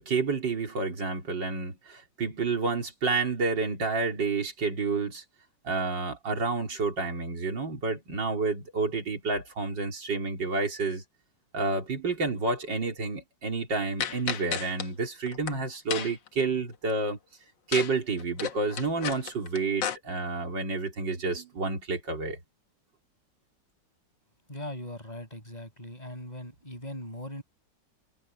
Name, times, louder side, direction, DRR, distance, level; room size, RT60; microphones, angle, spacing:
voice 1, 0.0-5.2 5.6-11.0 11.5-17.2 17.7-22.4, right 4 dB, 75° right, 4.5 m, -29 dB
sound 1, 14.0-14.9 15.3-15.5 15.9-16.3 17.7-17.9 18.2-20.0, left 8 dB, 80° left, 1.9 m, -32 dB
voice 2, 24.5-27.4, left 1 dB, 20° left, 8.3 m, -40 dB
omnidirectional pair, 2.0 m